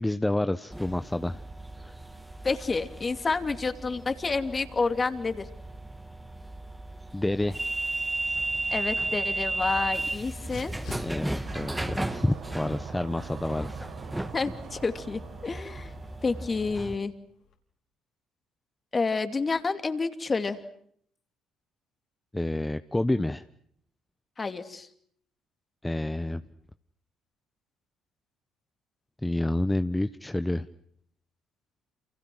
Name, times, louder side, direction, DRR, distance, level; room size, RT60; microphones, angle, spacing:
voice 1, 0.0-1.4 1.8-2.0 7.1-7.6 10.9-13.8 22.3-23.4 25.8-26.4 29.2-30.7, left 1 dB, 10° left, 11 dB, 1.0 m, -29 dB
sound 1, 0.7-17.0, right 2 dB, 10° right, 2.2 m, -35 dB
voice 2, 2.4-5.5 8.7-10.7 14.3-15.9 16.2-17.1 18.9-20.6 24.4-24.9, left 4 dB, 30° left, 8 dB, 2.7 m, -29 dB
Dog, 8.5-17.6, left 6 dB, 65° left, 5.1 m, -54 dB
sound 2, 11.4-16.7, right 6 dB, 65° right, 6.4 m, -44 dB
29.0 x 28.5 x 6.3 m, 0.67 s
hypercardioid pair, 55°, 0 cm